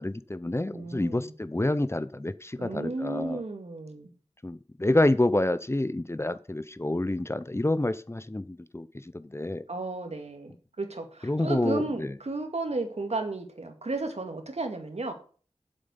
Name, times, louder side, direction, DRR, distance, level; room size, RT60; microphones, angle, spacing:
voice 1, 0.0-3.4 4.4-8.9 9.1-9.7 11.2-12.1, left 1 dB, 25° left, 14 dB, 0.7 m, -28 dB
voice 2, 0.7-1.3 2.6-4.1 9.7-15.1, right 2 dB, 70° right, 5 dB, 2.1 m, -34 dB
7.7 x 7.6 x 7.0 m, 0.41 s
wide cardioid pair, 40°, 11 cm